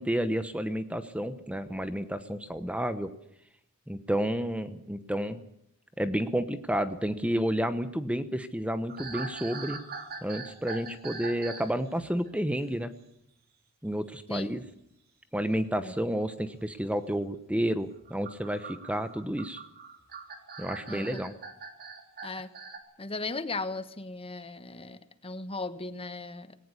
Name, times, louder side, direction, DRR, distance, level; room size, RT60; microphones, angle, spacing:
voice 1, 0.0-3.1 3.9-5.4 6.0-9.8 10.2-12.9 13.8-14.6 15.3-19.6 20.6-21.3, equal, 5° right, 11 dB, 1.1 m, -30 dB
sound 1, 8.9-11.7 12.0-12.3 14.5-14.7 16.0-16.1 18.0-22.8, right 4 dB, 45° right, 3.3 m, -42 dB
voice 2, 23.0-26.6, left 3 dB, 25° left, 12 dB, 1.2 m, -37 dB
19.5 x 18.0 x 8.3 m, 0.75 s
head